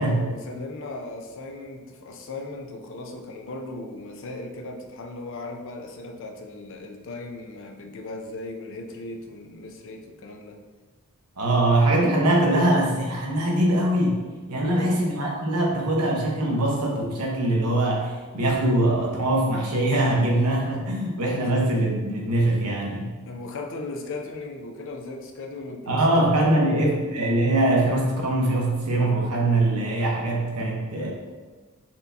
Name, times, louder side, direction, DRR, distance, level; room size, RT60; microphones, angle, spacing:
voice 1, 0.0-10.6 14.6-15.0 23.2-27.0, left 2 dB, 60° left, 3 dB, 0.5 m, -37 dB
voice 2, 11.4-14.2 14.5-23.1 25.9-31.1, right 1 dB, 85° right, -1 dB, 0.9 m, -22 dB
4.3 x 2.7 x 3.4 m, 1.4 s
head